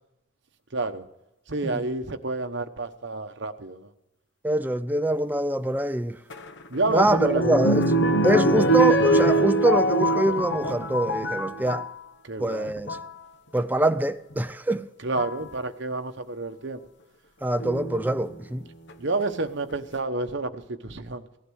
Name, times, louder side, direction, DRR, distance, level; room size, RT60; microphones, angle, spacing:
voice 1, 0.7-1.1 1.5-3.9 6.7-7.4 12.2-12.7 15.0-16.8 19.0-21.3, right 2 dB, 55° right, 1.0 m, -29 dB
voice 2, 4.4-6.2 6.9-7.8 8.2-11.9 12.4-13.0 13.5-14.9 17.4-18.6, right 1 dB, 10° right, 0.4 m, -24 dB
sound 1, 6.3-11.9 12.7-13.1 14.4-14.5 15.2-15.5 17.6-18.2 18.9-19.0 19.2-19.3, right 1 dB, 60° left, 1.1 m, -23 dB
18.0 x 11.5 x 6.3 m
head